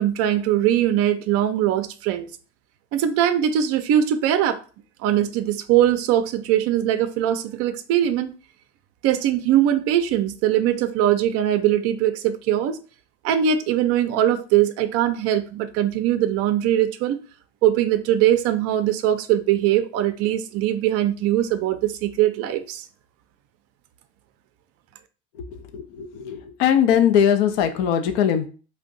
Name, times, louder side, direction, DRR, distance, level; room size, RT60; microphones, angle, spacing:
voice 1, 0.0-2.3 2.9-4.6 5.0-8.3 9.0-12.8 13.2-17.2 17.6-22.9, right 11 dB, 45° right, 0.5 m, -21 dB
voice 2, 25.4-28.5, left 9 dB, 55° left, 0.5 m, -21 dB
2.5 x 2.2 x 3.7 m
hypercardioid pair, 90°, 35 cm